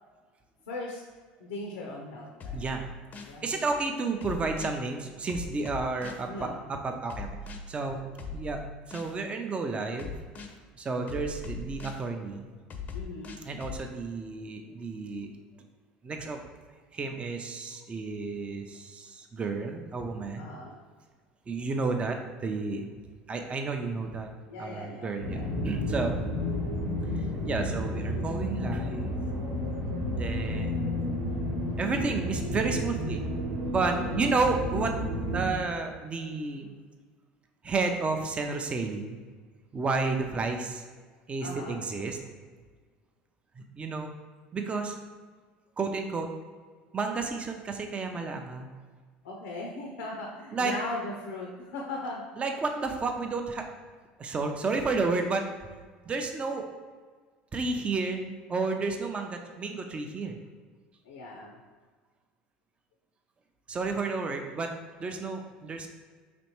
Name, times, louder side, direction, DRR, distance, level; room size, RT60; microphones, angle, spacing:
voice 1, 0.7-1.0 1.4-2.7 3.2-3.5 6.3-6.8 7.8-8.0 12.9-13.4 20.4-20.8 24.5-25.5 33.9-34.3 41.4-41.8 49.2-52.2 61.0-61.6, left 2 dB, 90° left, 0 dB, 0.6 m, -39 dB
sound 1, 2.4-3.4 4.2-4.8 5.3-6.3 7.1-7.6 8.2-9.2 10.0-10.6 11.1-12.0 12.7-13.8, left 3 dB, 40° left, 0.5 m, -39 dB
voice 2, 2.5-2.8 3.4-7.3 7.7-8.0 8.3-10.1 10.8-12.4 13.5-15.3 16.0-16.4 16.9-20.5 21.5-22.8 23.3-24.3 24.6-26.2 27.4-29.2 30.2-30.9 31.8-33.2 33.7-35.0 35.3-36.7 37.6-39.2 39.7-40.8 41.3-42.2 43.6-44.1 44.5-45.0 45.8-46.3 46.9-48.7 50.5-50.7 52.4-53.7 54.2-55.5 56.1-56.6 57.5-60.4 63.7-65.9, right 3 dB, 25° right, 4 dB, 0.4 m, -31 dB
sound 2, 25.2-35.5, left 1 dB, 75° right, 1.1 m, -31 dB
4.2 x 3.1 x 2.9 m, 1.5 s
supercardioid pair, 90°, 4 cm